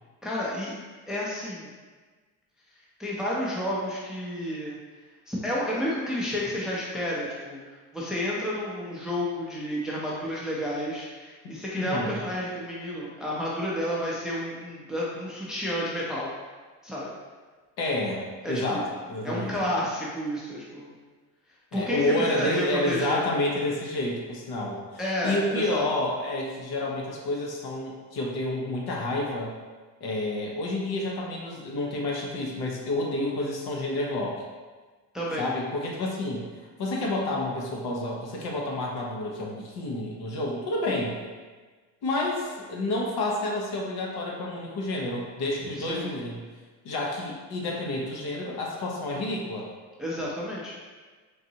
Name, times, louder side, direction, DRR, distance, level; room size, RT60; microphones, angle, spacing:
voice 1, 0.2-0.7 1.1-1.7 3.0-4.8 5.3-7.6 7.9-16.3 16.8-17.1 18.4-18.8 19.2-20.9 21.7-22.0 22.3-23.3 25.0-25.9 35.1-35.5 45.8-46.1 50.0-50.7, equal, ahead, -5 dB, 0.6 m, -31 dB
voice 2, 11.4-12.2 17.8-19.5 21.7-24.8 25.2-29.5 30.0-34.4 35.4-41.2 42.0-46.5 46.8-49.7, left 1 dB, 55° left, -2 dB, 0.9 m, -29 dB
3.9 x 2.6 x 2.8 m, 1.4 s
supercardioid pair, 95°, 46 cm